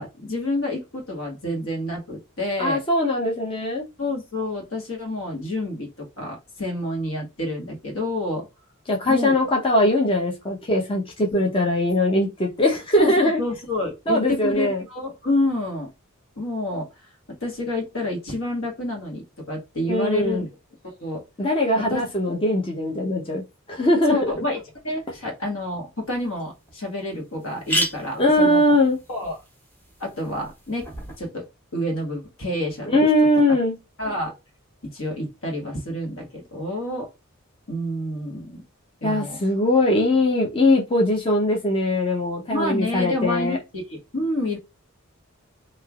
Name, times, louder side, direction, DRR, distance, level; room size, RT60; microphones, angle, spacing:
voice 1, 0.0-2.8 4.0-8.5 9.1-9.3 13.0-15.9 16.4-16.9 17.3-20.5 20.8-21.2 21.8-22.0 24.1-24.6 24.8-28.6 29.1-29.4 30.0-30.9 31.2-31.4 31.7-33.0 34.0-34.4 34.9-37.1 37.7-38.6 39.0-39.4 42.5-44.6, left 1 dB, 65° left, 1.5 m, -28 dB
voice 2, 2.6-3.8 8.9-13.4 14.1-14.8 19.9-20.4 21.4-23.4 23.7-24.2 28.2-29.0 32.9-33.8 39.0-43.6, left 1 dB, 25° left, 0.6 m, -21 dB
sound 1, 26.1-26.2 26.7-26.8 27.0-27.1 27.4-31.2, equal, 10° left, 1.1 m, -32 dB
3.2 x 2.8 x 2.3 m
head